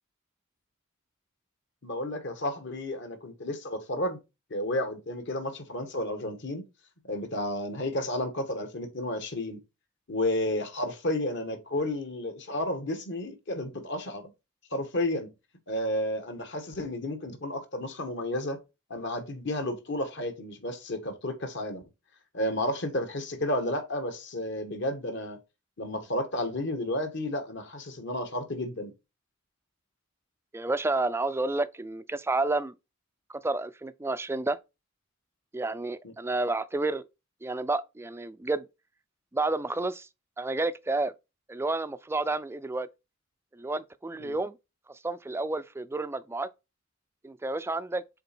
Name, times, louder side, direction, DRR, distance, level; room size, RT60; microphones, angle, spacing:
voice 1, 1.8-4.2 4.5-6.6 7.0-9.6 10.1-14.3 14.7-15.3 15.7-18.6 18.9-21.8 22.3-25.4 25.8-28.9 36.0-36.1 44.2-44.4, left 1 dB, 60° left, 1.5 m, -32 dB
voice 2, 30.5-32.7 33.3-34.6 35.5-37.0 37.4-38.7 39.3-40.1 40.4-41.1 41.5-42.9 43.5-44.6 44.9-46.5 47.2-48.0, right 2 dB, 10° right, 0.4 m, -30 dB
6.8 x 4.2 x 4.3 m
head